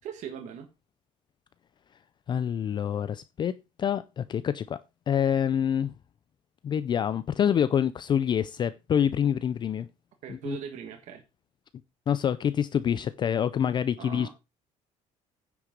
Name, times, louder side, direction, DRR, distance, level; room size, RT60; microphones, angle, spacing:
voice 1, 0.0-0.7 10.2-11.2 14.0-14.3, right 7 dB, 60° right, 1.5 m, -39 dB
voice 2, 2.3-3.5 3.8-4.8 5.1-5.9 6.6-9.9 10.3-10.6 12.1-14.3, left 8 dB, 35° left, 0.5 m, -26 dB
9.8 x 6.0 x 5.2 m
cardioid pair, 155°, 14 cm